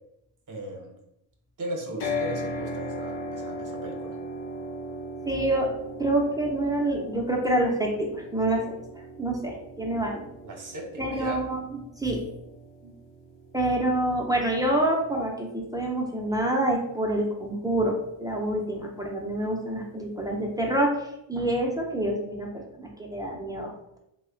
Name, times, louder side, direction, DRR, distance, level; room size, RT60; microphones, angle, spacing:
voice 1, 0.5-0.9 1.6-4.2 10.4-11.4, right 1 dB, 40° right, 2 dB, 0.8 m, -37 dB
sound 1, 2.0-16.1, left 1 dB, 65° left, 0.8 m, -38 dB
voice 2, 5.3-5.7 6.0-8.6 9.2-10.2 11.0-12.3 12.8-12.9 13.5-24.0, right 1 dB, 10° right, -1 dB, 0.4 m, -27 dB
3.0 x 2.1 x 3.7 m, 0.83 s
cardioid pair, 105°, 47 cm